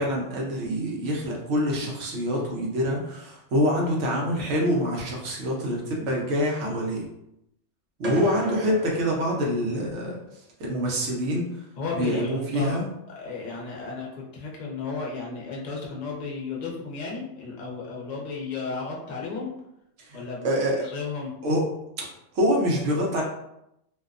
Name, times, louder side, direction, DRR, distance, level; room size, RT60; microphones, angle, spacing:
voice 1, 0.0-7.1 8.0-10.2 10.6-11.7 11.9-12.8 20.0-20.2 20.4-20.9 21.4-21.6 22.0-23.2, equal, 80° right, -1 dB, 1.0 m, -26 dB
sound 1, 8.0-10.1, equal, 60° right, 0.4 m, -37 dB
voice 2, 11.8-12.8 13.2-19.5 20.1-20.5 20.7-21.4, left 4 dB, 45° left, -3 dB, 0.6 m, -34 dB
2.6 x 2.1 x 2.4 m, 0.81 s
omnidirectional pair, 1.2 m